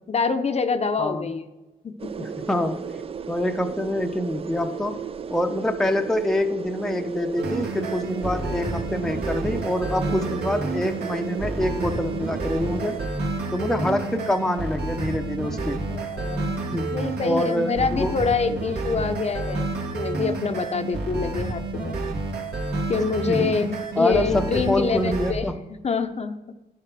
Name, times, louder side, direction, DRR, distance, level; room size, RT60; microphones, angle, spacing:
voice 1, 0.1-1.5 1.8-1.9 2.2-2.5 13.8-13.9 15.9-16.6 16.9-22.0 22.9-25.5 25.8-26.4, left 5 dB, 40° left, 7 dB, 0.7 m, -26 dB
sound 1, 2.0-13.1, right 7 dB, 35° right, 0.4 m, -34 dB
voice 2, 2.2-2.8 3.3-5.0 5.3-13.0 13.5-15.8 16.7-16.9 17.2-18.1 23.3-23.5 24.0-25.6, left 1 dB, 5° left, 5 dB, 0.6 m, -26 dB
sound 2, 7.4-25.3, right 2 dB, 75° right, 2.0 m, -30 dB
10.5 x 6.6 x 6.0 m, 1.1 s
cardioid pair, 110°, 17 cm